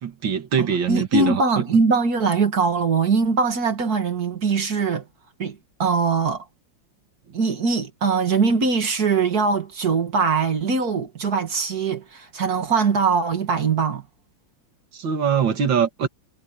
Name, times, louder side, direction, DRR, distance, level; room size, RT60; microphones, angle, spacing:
voice 1, 0.0-1.8 14.9-16.1, right 7 dB, 75° right, 2.5 m, -23 dB
voice 2, 0.6-5.0 5.4-6.5 7.3-14.0, right 4 dB, 50° right, 2.3 m, -22 dB
omnidirectional pair, 2.1 m